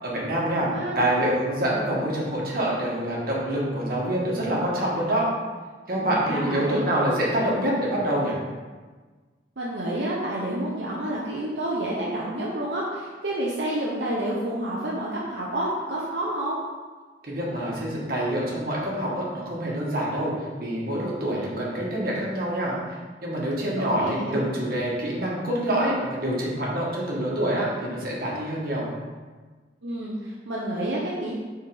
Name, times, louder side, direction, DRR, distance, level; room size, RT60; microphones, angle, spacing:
voice 1, 0.0-0.7 1.0-5.3 5.9-8.4 17.2-22.8 23.2-28.9, right 1 dB, 55° right, -5 dB, 1.7 m, -26 dB
voice 2, 0.5-1.1 5.9-6.8 9.6-16.6 23.7-24.4 29.8-31.4, right 1 dB, 75° right, -5 dB, 0.9 m, -29 dB
5.6 x 4.5 x 4.9 m, 1.4 s
head